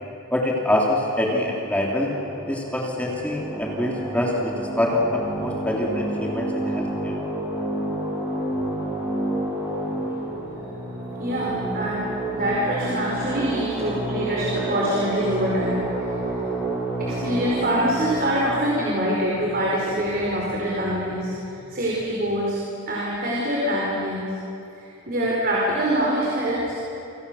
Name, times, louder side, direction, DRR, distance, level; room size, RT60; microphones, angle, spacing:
voice 1, 0.3-2.1 2.5-7.1, left 1 dB, 5° left, -2 dB, 3.1 m, -25 dB
sound 1, 1.9-20.0, right 2 dB, 10° right, 6.6 m, -30 dB
voice 2, 11.2-12.1 12.3-15.9 16.2-16.3 17.0-21.3 21.7-22.6 22.9-24.3 24.8-26.7, equal, 45° right, -4 dB, 5.1 m, -24 dB
29.5 x 26.0 x 7.1 m, 2.8 s
head